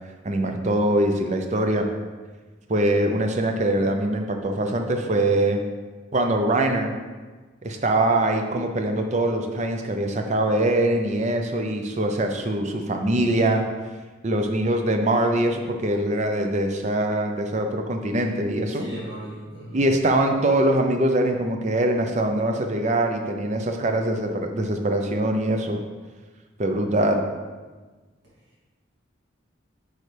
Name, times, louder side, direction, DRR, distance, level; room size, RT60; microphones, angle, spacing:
voice 1, 0.2-1.9 2.7-5.6 6.1-7.0 7.6-13.6 14.2-18.8 19.7-25.8 26.6-27.2, right 1 dB, 35° right, 4 dB, 0.5 m, -23 dB
voice 2, 18.7-19.9, right 1 dB, 60° right, -7 dB, 2.3 m, -37 dB
8.4 x 4.9 x 3.3 m, 1.3 s
head